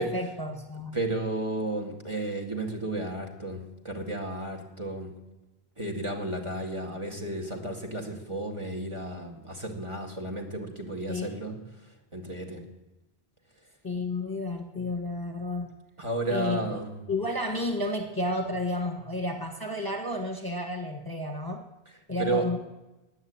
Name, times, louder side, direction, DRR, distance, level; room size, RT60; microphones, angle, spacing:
voice 1, 0.0-0.9 11.1-11.4 13.8-15.7 16.3-16.7 17.1-21.6 22.1-22.6, left 1 dB, 20° left, 4 dB, 1.5 m, -31 dB
voice 2, 0.9-5.1 5.8-11.6 12.1-12.6 16.0-16.9 22.2-22.4, right 2 dB, 30° right, 3 dB, 2.2 m, -32 dB
15.5 x 9.7 x 8.8 m, 1.0 s
omnidirectional pair, 1.0 m